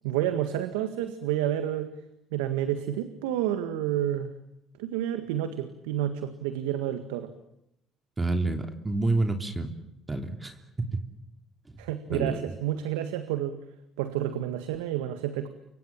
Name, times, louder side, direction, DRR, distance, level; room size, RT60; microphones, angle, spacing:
voice 1, 0.0-1.9 2.3-4.3 4.8-7.3 11.8-13.6 14.0-15.5, right 11 dB, 85° right, 9 dB, 1.9 m, -29 dB
voice 2, 8.2-9.7 10.1-11.0 12.1-12.5, right 2 dB, 20° right, 5 dB, 3.3 m, -28 dB
29.5 x 25.0 x 7.4 m, 0.84 s
hypercardioid pair, 65°, 0 cm